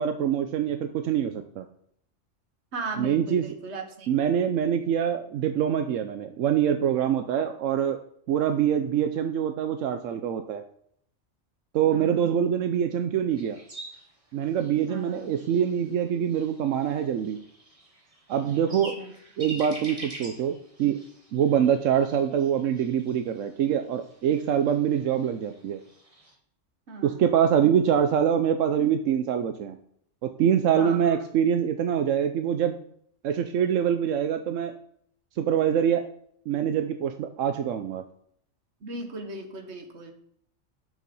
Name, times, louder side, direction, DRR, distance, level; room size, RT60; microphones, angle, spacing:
voice 1, 0.0-1.6 3.0-3.4 4.1-8.0 8.3-10.6 11.7-13.6 14.3-17.4 18.3-19.0 19.4-21.0 21.3-25.8 27.0-29.8 30.2-32.8 33.2-34.7 35.4-36.1 36.5-38.0, right 9 dB, 90° right, 7 dB, 1.0 m, -24 dB
voice 2, 2.7-4.1 11.9-12.3 14.9-15.3 18.7-19.1 26.9-27.3 30.7-31.3 38.8-40.1, right 3 dB, 60° right, 4 dB, 1.6 m, -37 dB
sound 1, 13.3-26.3, right 1 dB, 30° right, 1.7 m, -46 dB
7.3 x 6.2 x 5.3 m, 0.65 s
omnidirectional pair, 1.3 m